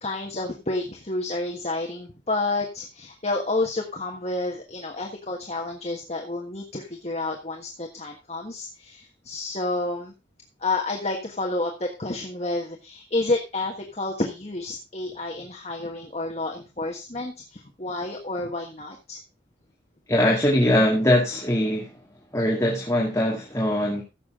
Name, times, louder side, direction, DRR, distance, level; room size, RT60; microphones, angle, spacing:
voice 1, 0.0-10.1 10.6-19.2, left 2 dB, 35° left, 1 dB, 1.4 m, -30 dB
voice 2, 20.1-22.0 22.3-24.0, left 1 dB, 15° left, -2 dB, 2.2 m, -22 dB
15.0 x 7.2 x 3.7 m, 0.27 s
head